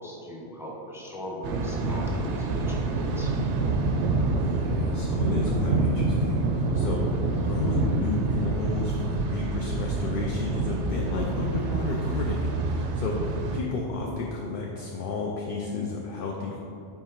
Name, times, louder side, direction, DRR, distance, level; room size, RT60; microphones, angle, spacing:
voice 1, 0.0-3.3 13.4-13.6, equal, 5° right, -3 dB, 0.7 m, -39 dB
Thunder, 1.4-13.6, right 3 dB, 85° right, 0.9 m, -27 dB
voice 2, 4.3-16.6, left 4 dB, 60° left, -1 dB, 0.7 m, -32 dB
5.6 x 4.4 x 4.5 m, 2.8 s
omnidirectional pair, 1.1 m